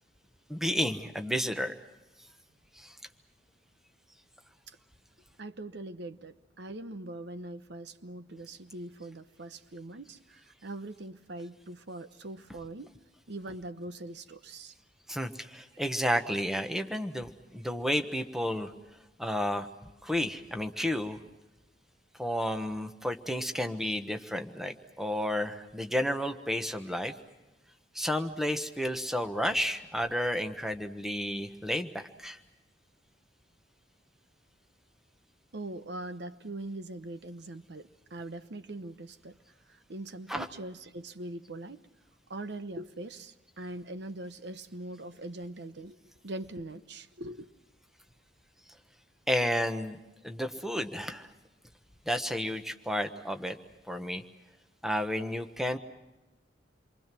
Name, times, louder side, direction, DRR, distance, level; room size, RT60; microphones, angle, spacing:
voice 1, 0.5-1.8 2.8-2.9 15.1-18.7 19.2-19.7 20.0-21.2 22.2-27.1 27.9-32.4 40.3-40.5 49.3-50.0 50.2-51.3 52.1-53.6 53.9-54.2 54.8-55.8, equal, ahead, 1.3 m, -31 dB
voice 2, 5.4-12.9 13.3-14.7 35.5-39.4 39.7-41.8 42.3-46.0 46.2-47.5, right 2 dB, 65° right, 1.0 m, -42 dB
28.0 x 24.0 x 6.2 m
head